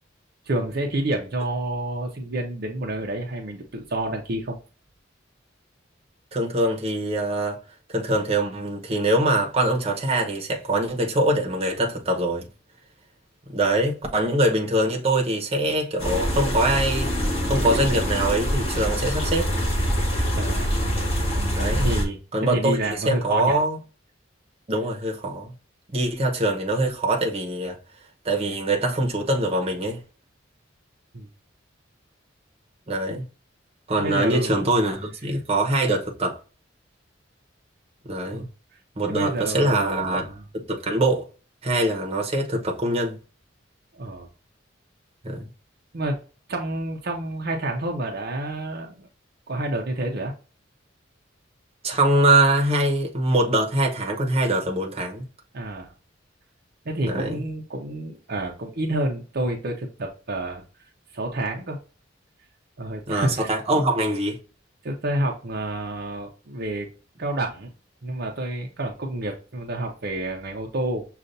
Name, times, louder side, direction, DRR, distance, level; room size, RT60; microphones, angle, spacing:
voice 1, 0.5-4.6 20.3-20.7 21.7-23.5 31.1-31.3 34.0-34.6 38.3-38.5 39.1-40.4 44.0-44.3 45.9-46.2 46.5-49.1 49.5-50.3 55.5-55.9 56.9-60.6 61.1-61.8 62.8-63.5 64.8-66.9 67.2-67.7 68.0-71.0, right 1 dB, 55° right, 0.7 m, -29 dB
voice 2, 6.3-7.6 7.9-12.5 13.5-17.1 17.4-19.5 21.5-21.9 22.3-23.8 24.7-25.5 25.9-27.8 28.2-30.0 32.9-33.2 33.9-36.4 38.0-38.4 39.0-40.3 40.5-41.2 41.6-43.2 45.2-45.5 51.8-55.2 57.1-57.4 63.1-64.4, right 1 dB, 30° right, 0.9 m, -23 dB
sound 1, 16.0-22.1, equal, 30° left, 1.5 m, -24 dB
6.5 x 2.4 x 2.6 m
head